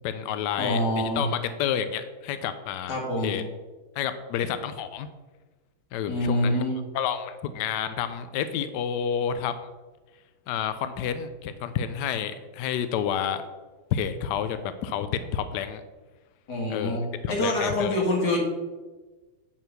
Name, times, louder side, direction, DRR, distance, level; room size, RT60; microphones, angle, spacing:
voice 1, 0.0-3.0 3.2-3.4 4.0-5.1 5.9-6.6 6.9-9.7 10.5-13.4 13.9-15.8 16.7-17.0 17.2-17.9, left 8 dB, 80° left, 11 dB, 0.9 m, -29 dB
voice 2, 0.6-1.3 2.9-3.3 6.1-6.8 16.5-18.4, left 1 dB, 50° left, -1 dB, 2.6 m, -26 dB
9.0 x 4.6 x 6.6 m, 1.3 s
omnidirectional pair, 2.4 m